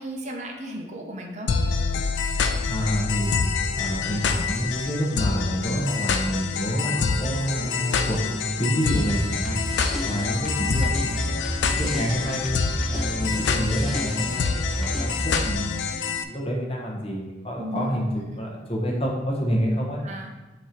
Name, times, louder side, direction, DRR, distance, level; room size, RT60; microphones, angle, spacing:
voice 1, 0.0-1.5 7.6-7.8 17.6-18.0 18.3-18.4 20.0-20.3, right 1 dB, 40° right, 1 dB, 0.8 m, -35 dB
sound 1, 1.5-16.2, left 5 dB, 80° left, 0.4 m, -27 dB
voice 2, 2.7-3.3 3.7-9.6 10.0-12.6 12.9-18.1 18.3-20.0, equal, 30° left, -2 dB, 1.1 m, -28 dB
sound 2, 8.9-15.5, equal, ahead, 0.5 m, -30 dB
6.5 x 2.9 x 5.1 m, 1.1 s
head